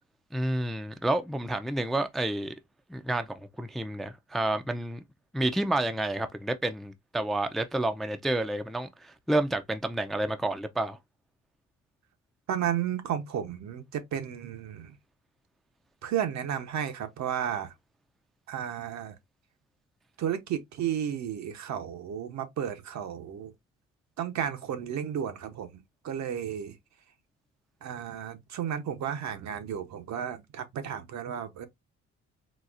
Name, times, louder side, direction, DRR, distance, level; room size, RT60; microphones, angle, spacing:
voice 1, 0.3-2.5 2.9-5.0 5.3-11.0, right 1 dB, ahead, 0.4 m, -30 dB
voice 2, 12.5-15.0 16.0-17.7 18.5-19.2 20.2-23.5 24.2-26.8 27.8-31.7, right 9 dB, 65° right, 0.8 m, -33 dB
4.1 x 2.3 x 2.4 m
cardioid pair, 90°, 30 cm